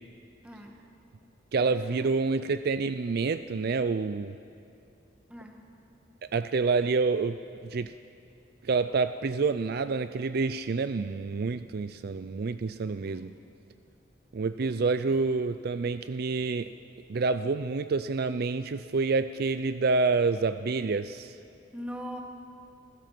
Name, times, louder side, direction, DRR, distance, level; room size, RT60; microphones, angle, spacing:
voice 1, 0.4-0.8 1.6-2.1 5.3-5.6 13.0-13.3 14.6-14.8 21.7-22.2, equal, 5° right, 1 dB, 1.9 m, -42 dB
voice 2, 1.5-4.4 6.3-7.4 7.6-7.9 8.6-13.3 14.3-16.7 17.1-21.4, right 4 dB, 50° right, 11 dB, 0.4 m, -28 dB
27.0 x 16.0 x 6.0 m, 2.6 s
head